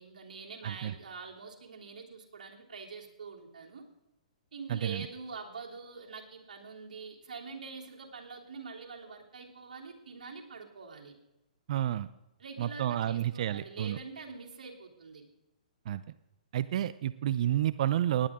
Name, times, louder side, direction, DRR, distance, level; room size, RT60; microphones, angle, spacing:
voice 1, 0.0-3.8 4.5-11.1 12.4-15.2, right 4 dB, 75° right, 0 dB, 3.3 m, -45 dB
voice 2, 0.6-0.9 4.7-5.1 11.7-12.1 12.6-14.0 15.9-16.0 16.5-18.3, right 11 dB, 55° right, 15 dB, 0.5 m, -30 dB
18.5 x 10.5 x 3.7 m, 0.95 s
hypercardioid pair, 135°, 4 cm